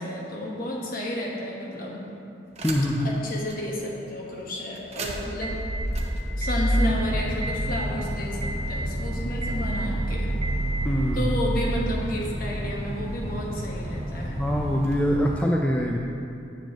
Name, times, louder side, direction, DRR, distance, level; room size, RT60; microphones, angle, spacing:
voice 1, 0.0-2.0 3.0-5.6 6.4-10.3 11.1-14.3, equal, 55° left, -3 dB, 1.3 m, -31 dB
voice 2, 2.6-3.1 10.8-11.3 14.4-16.0, equal, 10° left, 0 dB, 0.4 m, -24 dB
sound 1, 2.6-3.1 3.5-3.6 4.8-15.4, right 1 dB, 40° right, 0.8 m, -29 dB
9.3 x 7.1 x 3.0 m, 2.5 s
head